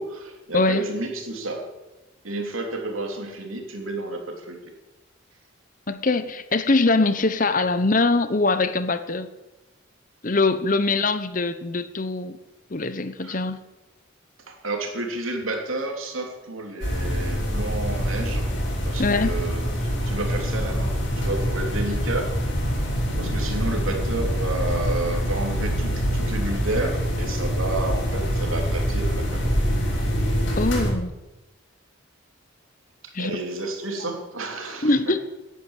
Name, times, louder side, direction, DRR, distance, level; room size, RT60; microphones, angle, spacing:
voice 1, 0.0-1.7 2.2-4.7 13.2-13.4 14.5-18.5 18.9-22.3 23.2-29.4 33.2-34.9, right 2 dB, 85° right, 3 dB, 3.3 m, -31 dB
voice 2, 0.5-0.8 5.9-9.3 10.2-12.4 12.7-13.6 19.0-19.3 30.6-31.1 33.1-33.4 34.0-34.1 34.8-35.2, left 3 dB, 40° left, 12 dB, 0.9 m, -22 dB
sound 1, 16.8-30.9, equal, 60° left, 6.1 m, -25 dB
17.5 x 10.5 x 7.4 m, 1.0 s
head